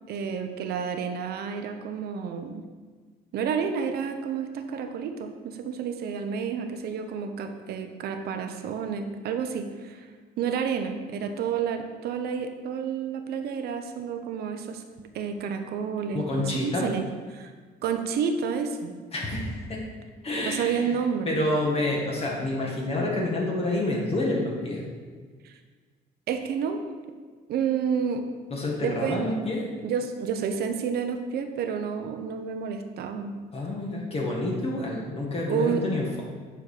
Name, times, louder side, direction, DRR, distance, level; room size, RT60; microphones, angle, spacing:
voice 1, 0.1-2.6 3.3-10.1 10.4-14.8 15.1-17.1 17.3-17.5 17.8-18.9 20.4-21.4 25.4-25.6 26.3-26.8 27.5-28.3 28.8-29.5 29.8-33.3 35.5-35.8, right 6 dB, 70° right, 6 dB, 0.9 m, -30 dB
voice 2, 16.1-16.9 19.1-19.9 20.2-21.0 21.3-24.8 28.5-29.6 33.5-36.2, left 2 dB, 35° left, -2 dB, 1.8 m, -28 dB
8.6 x 4.5 x 5.0 m, 1.5 s
cardioid pair, 110°, 17 cm